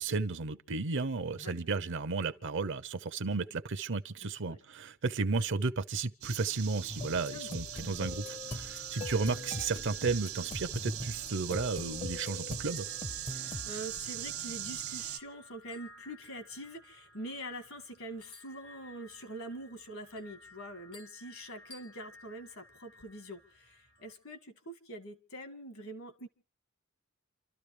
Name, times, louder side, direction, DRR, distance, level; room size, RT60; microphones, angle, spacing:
voice 1, 0.0-12.9, right 4 dB, 60° right, 0.7 m, -33 dB
voice 2, 4.2-4.6 7.3-7.5 13.3-26.3, right 1 dB, 70° left, 2.0 m, -45 dB
sound 1, 6.2-15.2, right 11 dB, 75° right, 1.3 m, -41 dB
sound 2, 6.9-13.7, left 2 dB, 30° left, 0.7 m, -42 dB
sound 3, 7.3-24.1, left 1 dB, 90° left, 6.6 m, -57 dB
29.0 x 13.0 x 3.3 m
head